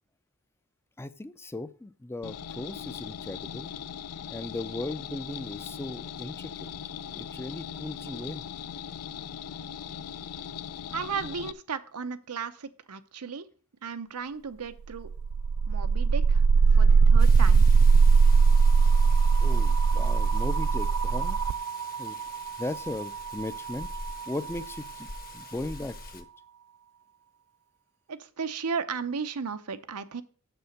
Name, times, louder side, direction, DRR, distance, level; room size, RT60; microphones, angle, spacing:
voice 1, 1.0-3.7 4.3-6.7 7.1-8.5 16.7-17.1 19.4-21.4 22.0-22.2 22.6-23.9 24.3-25.1 25.3-26.3, left 2 dB, 10° left, 13 dB, 0.4 m, -37 dB
sound 1, 2.2-11.5, left 8 dB, 85° left, 0.5 m, -39 dB
voice 2, 10.9-13.5 13.8-15.1 15.7-16.5 16.8-17.6 28.1-30.2, right 5 dB, 90° right, 11 dB, 0.8 m, -35 dB
sound 2, 15.0-24.9, right 5 dB, 75° right, 0.3 m, -21 dB
Rain, 17.2-26.2, left 4 dB, 40° left, 1.0 m, -46 dB
7.0 x 6.8 x 6.4 m, 0.42 s
head